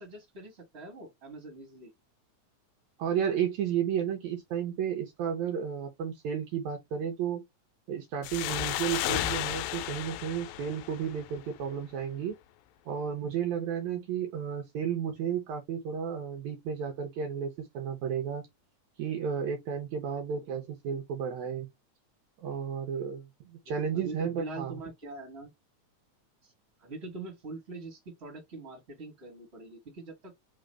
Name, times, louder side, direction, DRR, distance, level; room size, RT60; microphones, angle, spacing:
voice 1, 0.0-1.9 20.3-20.6 23.6-25.5 26.4-26.5 26.8-30.3, right 3 dB, 20° right, 2.3 m, -43 dB
voice 2, 3.0-7.4 7.9-12.4 12.9-18.4 19.0-21.7 22.4-24.8, right 8 dB, 70° right, 2.1 m, -33 dB
sound 1, 8.2-11.6, left 14 dB, 80° left, 1.8 m, -33 dB
4.3 x 3.8 x 3.2 m
omnidirectional pair, 3.5 m